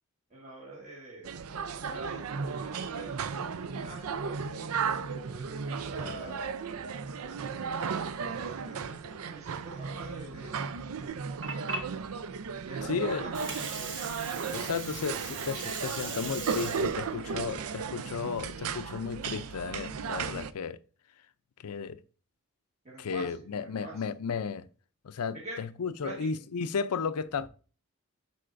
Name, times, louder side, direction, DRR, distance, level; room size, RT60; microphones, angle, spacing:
voice 1, 0.3-1.4 1.9-4.4 5.0-6.5 7.1-7.7 8.2-10.6 12.7-14.0 22.8-24.1 25.3-25.6 26.0-26.3, right 2 dB, 30° right, 1.5 m, -45 dB
sound 1, 1.2-20.5, right 6 dB, 75° right, 0.5 m, -35 dB
Water, 11.1-19.0, right 4 dB, 55° right, 1.3 m, -41 dB
voice 2, 12.9-13.3 14.5-20.8 21.6-22.0 23.0-24.7 25.0-27.5, left 5 dB, 90° left, 0.5 m, -34 dB
11.0 x 4.2 x 2.5 m
head